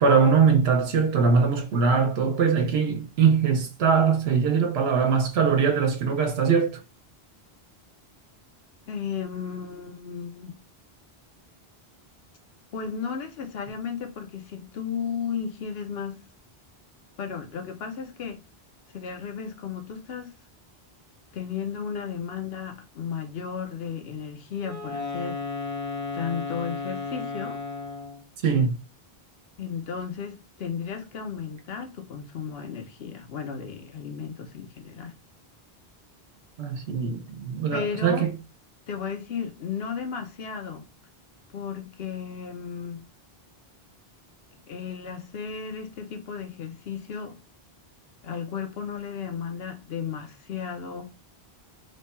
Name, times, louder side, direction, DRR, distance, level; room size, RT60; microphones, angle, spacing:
voice 1, 0.0-6.8 28.4-28.7 36.6-38.3, right 6 dB, 85° right, 0.9 m, -22 dB
voice 2, 8.9-10.5 12.7-16.2 17.2-18.4 18.9-20.3 21.3-25.4 26.1-27.6 29.6-35.1 37.7-38.3 38.9-40.9 41.5-43.0 44.7-47.4 48.2-51.1, left 7 dB, 75° left, 0.9 m, -34 dB
Wind instrument woodwind instrument, 24.6-28.3, left 3 dB, 35° left, 1.0 m, -34 dB
3.2 x 2.2 x 4.1 m
omnidirectional pair, 1.0 m